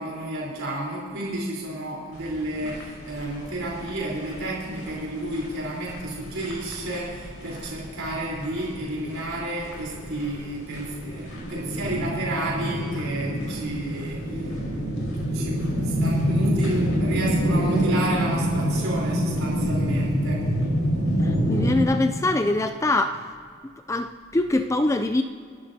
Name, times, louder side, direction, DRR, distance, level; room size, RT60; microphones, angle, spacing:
voice 1, 0.0-14.5 15.3-20.5, right 1 dB, 80° right, -5 dB, 4.1 m, -31 dB
sound 1, 2.1-21.7, equal, 80° left, 4.4 m, -27 dB
voice 2, 21.2-23.2 23.9-25.2, left 2 dB, 15° left, 8 dB, 0.4 m, -23 dB
29.0 x 12.0 x 2.8 m, 2.1 s
head